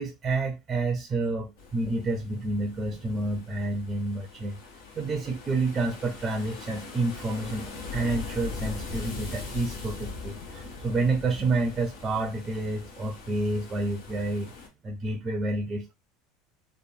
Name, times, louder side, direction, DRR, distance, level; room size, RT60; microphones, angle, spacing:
voice 1, 0.0-4.6 5.0-14.5 14.8-15.9, right 2 dB, 25° right, 0.5 m, -29 dB
sound 1, 1.6-14.7, left 4 dB, 80° left, 0.9 m, -41 dB
3.0 x 2.1 x 2.5 m
supercardioid pair, 110°, 0 cm